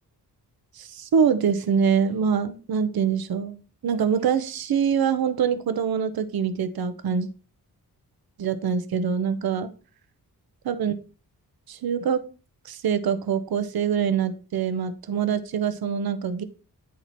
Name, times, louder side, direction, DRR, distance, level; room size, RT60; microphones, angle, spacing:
voice 1, 0.7-7.3 8.4-9.7 10.6-10.9 11.7-12.2 12.6-16.4, right 7 dB, 75° right, 10 dB, 0.8 m, -24 dB
9.7 x 4.2 x 4.4 m, 0.35 s
wide cardioid pair, 110°, 36 cm